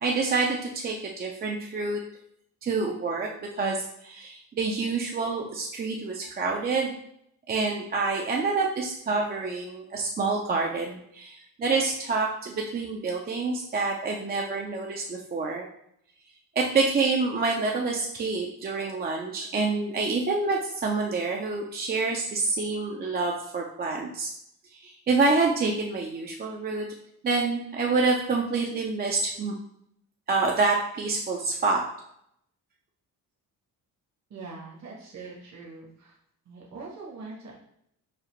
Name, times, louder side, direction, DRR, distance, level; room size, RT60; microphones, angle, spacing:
voice 1, 0.0-2.0 2.6-7.0 7.5-15.7 16.6-24.3 24.8-26.9 27.2-29.5 30.3-31.8, right 3 dB, 30° right, 0 dB, 0.4 m, -27 dB
voice 2, 34.3-36.1 36.5-37.5, right 4 dB, 50° right, -3 dB, 0.9 m, -42 dB
4.9 x 2.5 x 3.0 m, 0.72 s
cardioid pair, 135°, 35 cm